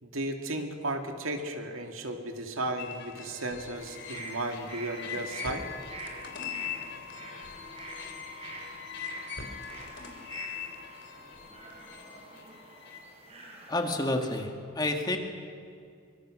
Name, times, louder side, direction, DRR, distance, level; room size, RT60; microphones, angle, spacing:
voice 1, 0.0-5.6, right 1 dB, 85° right, 5 dB, 2.3 m, -34 dB
sound 1, 2.8-13.0, left 7 dB, 60° left, 3.3 m, -41 dB
sound 2, 3.7-14.4, right 3 dB, 30° right, 4.3 m, -47 dB
voice 2, 13.7-15.2, left 1 dB, 20° left, 3 dB, 1.9 m, -29 dB
24.0 x 23.5 x 6.4 m, 2.3 s
head